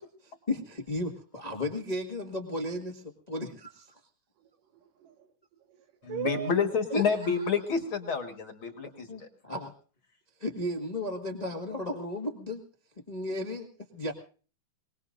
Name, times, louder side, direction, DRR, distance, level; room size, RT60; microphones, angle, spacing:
voice 1, 0.5-4.0 6.9-7.3 9.1-9.7 10.4-12.6 13.1-13.7 13.9-14.1, left 1 dB, 25° left, 0.9 m, -34 dB
voice 2, 4.4-6.5, right 11 dB, 85° right, 3.1 m, -40 dB
voice 3, 6.0-9.3, left 6 dB, 45° left, 2.0 m, -29 dB
25.0 x 19.5 x 2.6 m
omnidirectional pair, 3.7 m